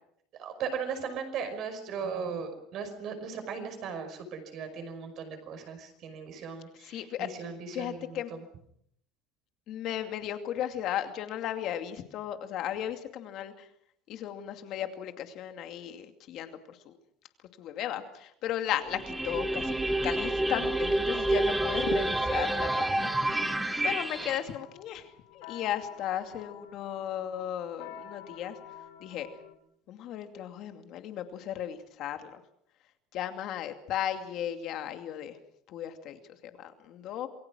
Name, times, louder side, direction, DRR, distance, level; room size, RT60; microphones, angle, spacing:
voice 1, 0.4-8.2, right 6 dB, 40° right, 7 dB, 5.5 m, -37 dB
voice 2, 6.8-7.3 7.7-8.3 9.7-13.7 14.1-16.9 17.6-19.7 20.0-23.1 23.8-28.6 29.0-29.3 29.9-32.4 33.1-35.4 35.7-37.3, left 11 dB, 40° left, 7 dB, 2.5 m, -35 dB
sound 1, 18.9-24.4, right 1 dB, 5° right, 1.3 m, -28 dB
sound 2, 21.1-29.5, left 9 dB, 85° left, 4.0 m, -51 dB
28.0 x 22.0 x 6.3 m, 0.70 s
cardioid pair, 175°, 0 cm